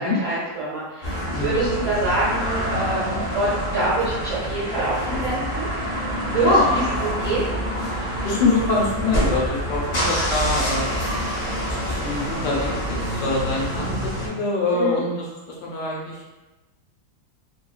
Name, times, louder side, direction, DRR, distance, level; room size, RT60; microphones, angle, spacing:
voice 1, 0.0-5.7 6.3-6.8 7.2-7.5 14.7-15.0, right 2 dB, 60° right, -8 dB, 0.9 m, -25 dB
sound 1, 1.0-14.3, equal, 55° left, 0.6 m, -26 dB
voice 2, 8.2-10.9 11.7-15.3 15.6-16.3, left 3 dB, 80° left, -4 dB, 1.3 m, -24 dB
3.0 x 2.3 x 2.3 m, 1.1 s
omnidirectional pair, 2.0 m